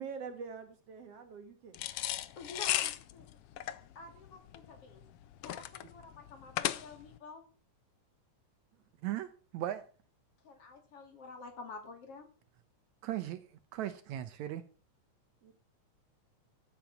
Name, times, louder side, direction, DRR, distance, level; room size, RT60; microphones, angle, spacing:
voice 1, 0.0-1.8 15.4-15.5, right 6 dB, 55° right, 2.3 m, -44 dB
sound 1, 1.7-7.2, left 13 dB, 85° left, 1.3 m, -36 dB
voice 2, 2.4-3.2 3.9-5.0 5.4-7.4 10.4-12.3, left 4 dB, 50° left, 3.2 m, -49 dB
voice 3, 9.0-9.8 13.0-13.4 13.7-14.6, right 12 dB, 75° right, 2.1 m, -37 dB
14.0 x 8.1 x 5.9 m
omnidirectional pair, 3.6 m